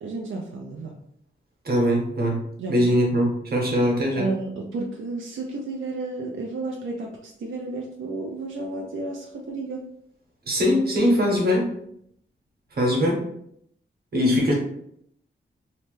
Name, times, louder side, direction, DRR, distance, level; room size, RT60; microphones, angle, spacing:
voice 1, 0.0-0.9 2.6-2.8 4.1-9.9, right 3 dB, 90° right, 0 dB, 0.4 m, -32 dB
voice 2, 1.6-4.3 10.5-11.7 12.7-13.3 14.1-14.5, equal, 55° right, -2 dB, 1.0 m, -21 dB
2.9 x 2.1 x 3.1 m, 0.71 s
wide cardioid pair, 115°, 20 cm